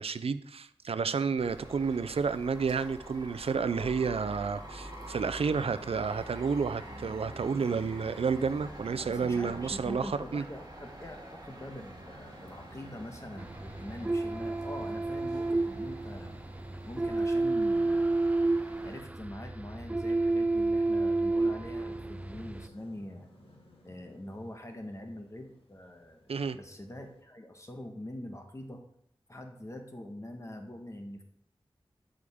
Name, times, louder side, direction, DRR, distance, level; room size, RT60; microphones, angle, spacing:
voice 1, 0.0-10.4 26.3-26.6, right 5 dB, 80° right, 13 dB, 0.5 m, -31 dB
sound 1, 1.4-19.0, right 1 dB, 40° right, 2.3 m, -46 dB
voice 2, 9.0-16.3 16.8-18.3 18.8-23.3 23.8-26.2 26.5-28.8 29.3-31.2, left 1 dB, 30° left, 4 dB, 1.2 m, -44 dB
sound 2, 10.9-27.2, left 1 dB, 70° left, 2.4 m, -59 dB
sound 3, 13.4-22.7, right 2 dB, 15° right, 0.3 m, -30 dB
12.5 x 5.0 x 3.6 m, 0.71 s
wide cardioid pair, 50°, 10 cm